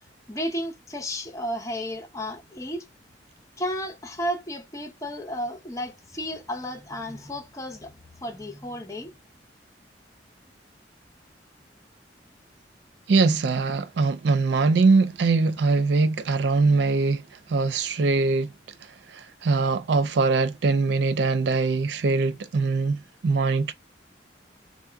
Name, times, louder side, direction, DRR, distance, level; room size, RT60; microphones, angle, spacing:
voice 1, 0.3-2.9 3.6-9.1, equal, 20° left, 0.8 m, -33 dB
voice 2, 13.1-17.2 17.5-18.5 19.1-23.7, right 4 dB, 70° right, 0.4 m, -22 dB
3.6 x 2.3 x 4.5 m
head